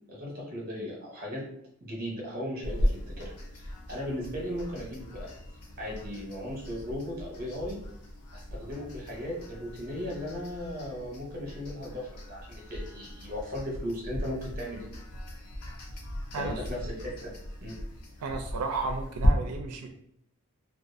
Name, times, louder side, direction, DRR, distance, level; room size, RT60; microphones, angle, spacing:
voice 1, 0.1-1.4 1.8-5.3 5.8-7.8 8.3-14.9 16.3-17.3 17.6-17.8, equal, 40° right, -2 dB, 0.8 m, -37 dB
sound 1, 2.6-19.3, equal, 80° left, 0.5 m, -37 dB
voice 2, 18.2-19.9, right 3 dB, 85° right, 4 dB, 0.4 m, -33 dB
2.4 x 2.3 x 2.5 m, 0.73 s
head